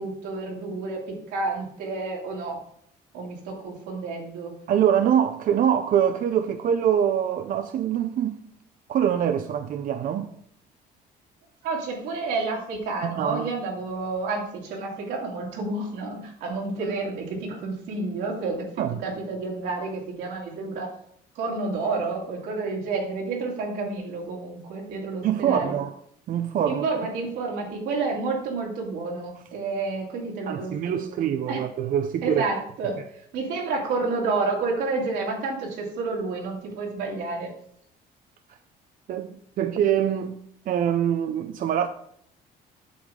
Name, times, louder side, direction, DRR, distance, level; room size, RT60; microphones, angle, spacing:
voice 1, 0.0-2.6 3.1-4.5 11.6-18.7 19.0-20.9 21.3-25.8 26.6-31.2 31.5-31.6 32.2-37.5, right 3 dB, 85° right, 2.8 m, -30 dB
voice 2, 4.7-8.4 8.9-10.3 13.0-13.5 18.8-19.0 25.2-25.9 26.3-26.9 30.5-32.4 39.1-39.3 39.6-41.9, right 9 dB, 55° right, 0.6 m, -24 dB
8.5 x 7.1 x 3.7 m
cardioid pair, 110°, 17 cm